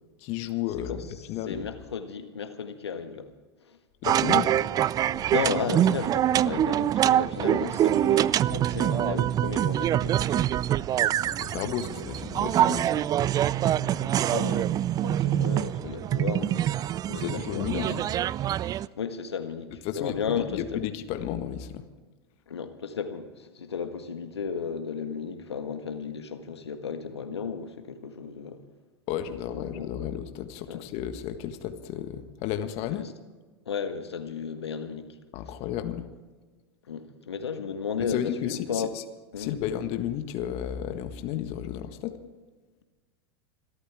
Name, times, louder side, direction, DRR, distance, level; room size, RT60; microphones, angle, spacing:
voice 1, 0.2-1.7 4.0-4.5 11.2-13.0 17.1-18.0 19.8-21.8 29.1-33.0 35.3-36.1 38.1-38.8 39.4-42.2, left 10 dB, 50° left, 7 dB, 1.5 m, -33 dB
voice 2, 0.9-3.3 3.6-3.8 5.3-10.5 13.6-18.0 18.6-20.8 22.5-28.6 29.3-30.1 30.7-30.8 32.9-33.1 33.7-35.1 35.4-35.5 36.9-38.9 39.3-39.7, left 6 dB, 85° left, 7 dB, 1.7 m, -34 dB
sound 1, 4.0-18.9, right 11 dB, 30° right, 0.4 m, -25 dB
26.5 x 13.0 x 3.6 m, 1.3 s
hypercardioid pair, 95°, 13 cm